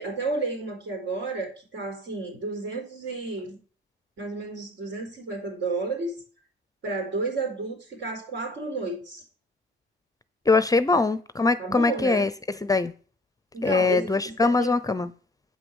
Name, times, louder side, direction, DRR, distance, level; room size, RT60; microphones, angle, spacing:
voice 1, 0.0-3.6 4.2-6.1 6.8-9.2 10.9-11.0 11.6-12.3 13.5-14.7, right 3 dB, 65° right, 4.4 m, -31 dB
voice 2, 10.5-12.9 13.6-15.1, left 3 dB, 20° left, 0.6 m, -22 dB
8.6 x 5.9 x 6.3 m
cardioid pair, 90°, 20 cm